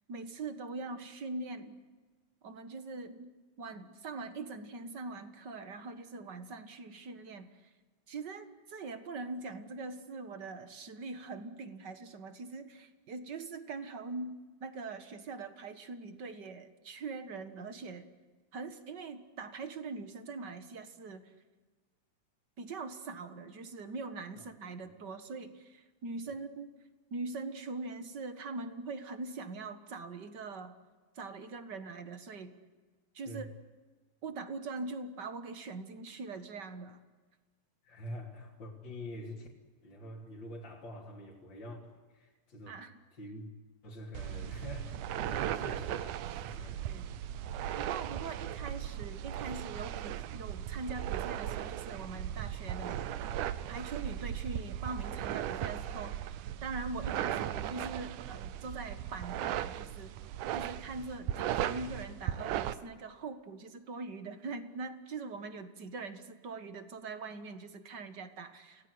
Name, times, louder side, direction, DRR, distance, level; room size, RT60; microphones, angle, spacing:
voice 1, 0.1-1.8 2.4-7.7 8.1-14.3 14.6-18.1 18.5-21.3 22.6-26.7 27.1-30.7 31.1-32.5 33.1-33.5 34.2-37.0 42.7-43.0 46.9-47.1 47.8-53.1 53.7-60.1 60.5-68.9, right 3 dB, 40° right, 10 dB, 1.7 m, -42 dB
voice 2, 37.8-39.5 39.8-42.7 43.1-43.5 43.8-46.8 61.2-61.4, left 1 dB, 35° left, -3 dB, 3.7 m, -46 dB
sound 1, 44.1-62.7, right 11 dB, 80° right, 2.4 m, -37 dB
28.5 x 18.5 x 9.6 m, 1.3 s
omnidirectional pair, 3.7 m